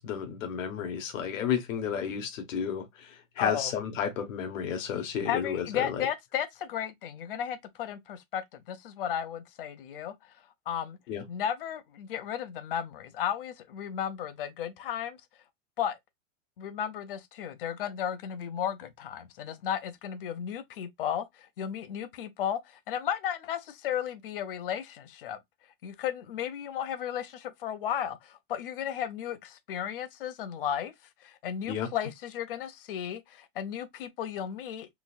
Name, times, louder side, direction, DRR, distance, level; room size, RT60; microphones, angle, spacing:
voice 1, 0.0-6.1 11.1-11.2 31.7-31.9, left 8 dB, 75° left, 1.1 m, -32 dB
voice 2, 3.4-3.7 4.9-10.1 10.7-11.0 11.3-15.2 15.8-16.0 16.6-25.4 25.8-30.9 31.2-34.9, left 9 dB, 45° left, 0.5 m, -34 dB
3.8 x 2.5 x 2.4 m
supercardioid pair, 175°, 39 cm